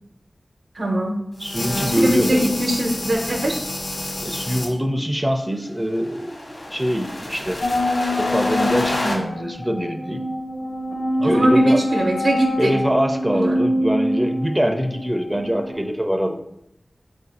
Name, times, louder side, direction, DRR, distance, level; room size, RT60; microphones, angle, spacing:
voice 1, 0.7-1.2 1.8-3.6 11.2-12.7 13.3-13.6, right 1 dB, 85° right, 2 dB, 0.7 m, -21 dB
sound 1, 1.4-4.7 5.8-9.1, left 1 dB, 55° left, 1.1 m, -29 dB
voice 2, 1.4-2.4 4.2-7.6 8.0-10.2 11.2-11.8 12.6-16.4, equal, 10° right, 4 dB, 0.4 m, -23 dB
sound 2, 7.6-15.8, equal, 80° left, 0.7 m, -24 dB
4.4 x 2.5 x 4.0 m, 0.82 s
wide cardioid pair, 70°, 0 cm